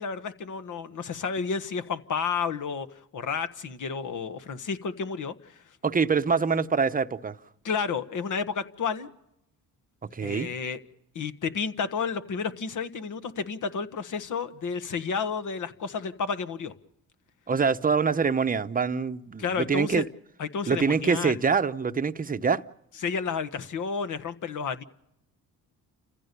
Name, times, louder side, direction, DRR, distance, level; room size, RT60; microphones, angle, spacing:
voice 1, 0.0-2.9 3.1-5.6 7.6-9.1 10.2-10.8 11.1-16.7 19.4-20.0 20.4-21.4 23.0-24.8, left 5 dB, 60° left, 1.5 m, -31 dB
voice 2, 5.8-7.4 10.0-10.5 17.5-20.1 20.7-22.6, right 5 dB, 25° right, 0.9 m, -25 dB
29.5 x 15.0 x 6.9 m
cardioid pair, 80°, 35 cm